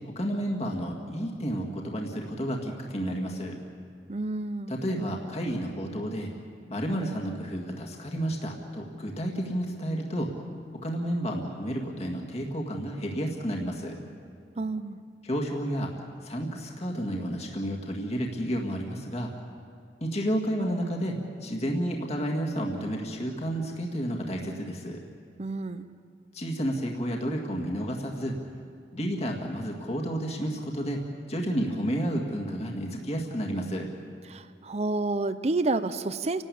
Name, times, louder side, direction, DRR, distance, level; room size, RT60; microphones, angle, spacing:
voice 1, 0.0-3.6 4.7-6.3 6.7-10.3 10.8-14.0 15.2-15.9 16.2-19.3 20.0-25.0 26.3-28.4 28.9-31.0 31.3-33.9, equal, 35° left, 0 dB, 2.0 m, -31 dB
voice 2, 4.1-4.8 14.6-15.0 25.4-26.0 34.3-36.4, right 2 dB, 40° right, 12 dB, 0.6 m, -29 dB
30.0 x 12.5 x 8.5 m, 2.3 s
head